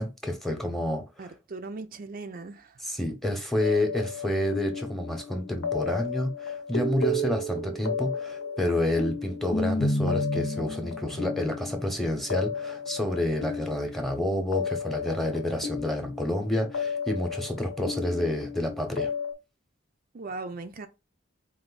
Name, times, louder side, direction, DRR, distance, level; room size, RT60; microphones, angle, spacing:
voice 1, 0.0-1.0 2.8-19.1, left 1 dB, ahead, 0.9 m, -29 dB
voice 2, 1.2-2.8 20.1-20.9, right 3 dB, 45° right, 0.4 m, -38 dB
sound 1, 3.6-19.3, left 3 dB, 80° left, 1.1 m, -32 dB
4.4 x 2.6 x 4.0 m
head